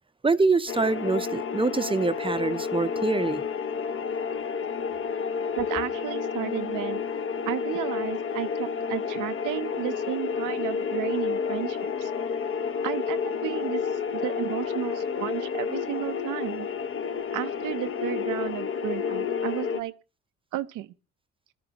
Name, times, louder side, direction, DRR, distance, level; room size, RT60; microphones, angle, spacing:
voice 1, 0.2-3.4, right 3 dB, 15° right, 0.6 m, -25 dB
sound 1, 0.7-19.8, left 6 dB, 45° left, 0.9 m, -30 dB
voice 2, 5.5-7.0 7.5-12.1 12.8-16.7 17.3-19.9 20.5-20.9, right 14 dB, 90° right, 0.7 m, -33 dB
20.5 x 12.5 x 2.9 m
cardioid pair, 90°, 30 cm